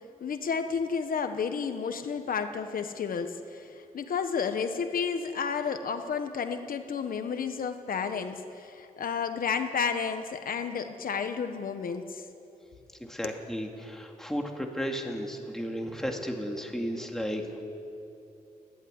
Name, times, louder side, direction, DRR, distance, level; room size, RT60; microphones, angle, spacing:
voice 1, 0.2-12.3 13.2-13.4, left 6 dB, 75° left, 8 dB, 1.2 m, -31 dB
voice 2, 13.0-17.4, equal, 5° left, 2 dB, 2.3 m, -34 dB
29.0 x 11.5 x 9.7 m, 2.7 s
wide cardioid pair, 135°, 15 cm